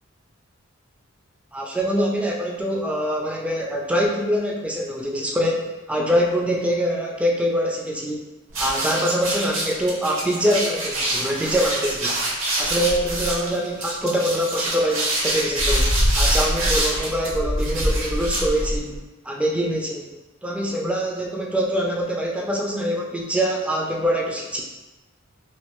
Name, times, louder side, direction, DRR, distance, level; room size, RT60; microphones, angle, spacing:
voice 1, 1.5-8.3 8.6-12.2 12.6-20.1 20.4-24.6, equal, 5° right, -1 dB, 0.3 m, -24 dB
sound 1, 8.5-19.0, right 1 dB, 75° right, 0.8 m, -24 dB
3.1 x 2.3 x 2.9 m, 1.1 s
head